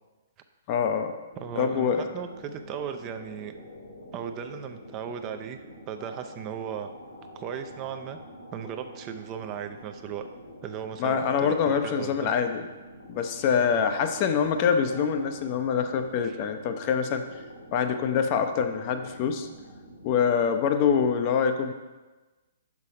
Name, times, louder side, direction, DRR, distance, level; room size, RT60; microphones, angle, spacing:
voice 1, 0.7-1.1 1.6-2.1 11.0-12.6 13.1-17.2 17.7-19.5 20.0-21.7, left 7 dB, 35° left, 7 dB, 0.6 m, -25 dB
sound 1, 1.3-20.2, equal, 80° left, 2.0 m, -47 dB
voice 2, 1.4-3.5 4.1-6.9 7.3-8.2 8.5-10.3 10.6-12.3 13.7-13.9 16.2-16.4, right 8 dB, 25° right, 7 dB, 0.4 m, -37 dB
6.0 x 5.5 x 5.0 m, 1.2 s
figure-of-eight pair, 120°, 0 cm